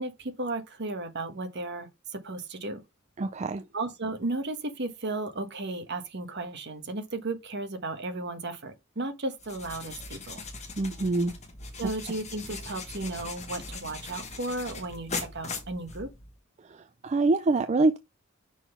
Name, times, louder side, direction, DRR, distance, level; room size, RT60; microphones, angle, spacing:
voice 1, 0.0-1.9 2.2-2.8 3.7-10.4 11.8-16.1, right 2 dB, 55° right, 1.4 m, -34 dB
voice 2, 3.2-3.6 10.8-11.3 16.6-18.0, right 3 dB, 35° right, 0.4 m, -25 dB
sound 1, 9.4-16.4, left 4 dB, 35° left, 1.6 m, -40 dB
6.1 x 3.9 x 5.8 m
head